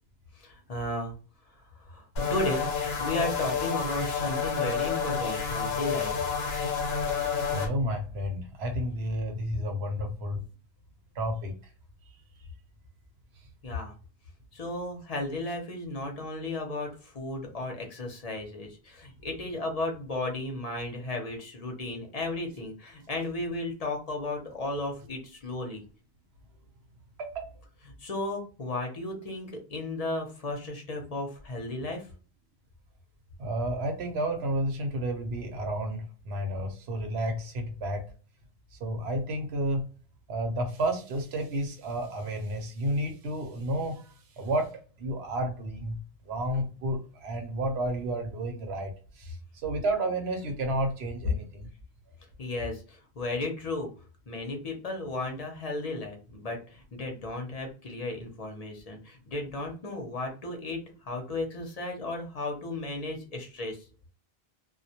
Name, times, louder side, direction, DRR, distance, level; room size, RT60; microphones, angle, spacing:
voice 1, 0.3-1.2 1.5-2.7 3.0-6.3 13.6-13.9 14.5-25.8 28.0-32.1 52.4-53.9 54.3-63.8, left 2 dB, 45° left, 2 dB, 0.7 m, -34 dB
sound 1, 2.2-7.7, left 6 dB, 80° left, 0.9 m, -29 dB
voice 2, 7.5-10.4 11.2-11.5 27.2-27.5 33.4-38.0 38.8-39.8 40.3-44.1 44.4-44.7 45.0-46.0 46.3-48.9 49.2-49.4 49.6-51.7, right 1 dB, 90° right, 5 dB, 0.9 m, -31 dB
2.1 x 2.1 x 2.7 m, 0.37 s
omnidirectional pair, 1.0 m